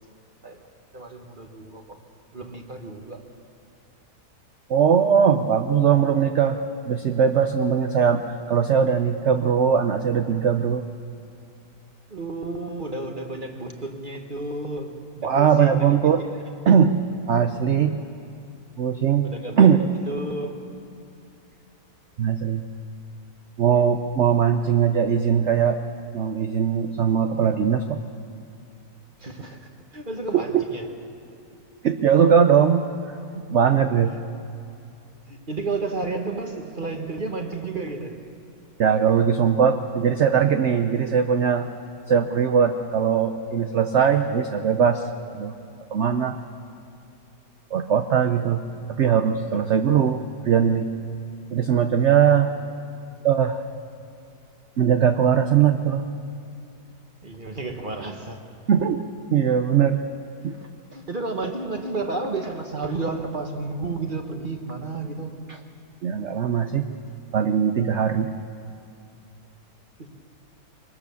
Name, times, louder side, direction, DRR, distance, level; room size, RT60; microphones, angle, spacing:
voice 1, 0.9-2.0 2.3-3.2 12.1-16.4 17.4-17.5 19.2-20.6 29.2-30.9 35.3-38.1 57.2-58.4 60.6-65.3 70.0-70.1, right 3 dB, 30° right, 4 dB, 1.3 m, -32 dB
voice 2, 4.7-6.6 6.9-10.8 15.2-16.2 16.7-17.0 17.3-18.0 18.8-19.3 19.6-19.8 22.2-22.6 23.6-25.8 26.1-28.0 30.3-30.6 31.8-32.8 33.3-34.1 38.8-41.7 42.1-45.1 45.3-45.5 45.9-46.4 47.7-48.6 48.9-50.9 51.5-52.5 53.2-53.6 54.8-56.1 58.7-59.0 59.3-60.0 60.4-60.5 65.5-65.6 66.0-66.9 67.3-68.3, right 7 dB, 55° right, 7 dB, 0.8 m, -20 dB
23.0 x 19.5 x 7.0 m, 2.6 s
omnidirectional pair, 1.9 m